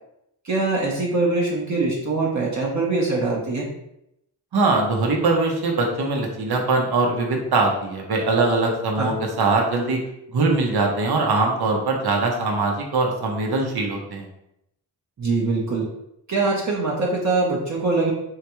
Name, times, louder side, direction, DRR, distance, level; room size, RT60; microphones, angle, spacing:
voice 1, 0.4-3.7 9.0-9.1 15.2-15.9 16.3-18.1, right 3 dB, 45° right, -3 dB, 0.9 m, -23 dB
voice 2, 4.5-10.0 10.3-14.3, right 3 dB, 75° right, 1 dB, 0.9 m, -22 dB
3.7 x 3.4 x 3.0 m, 0.82 s
wide cardioid pair, 85°, 39 cm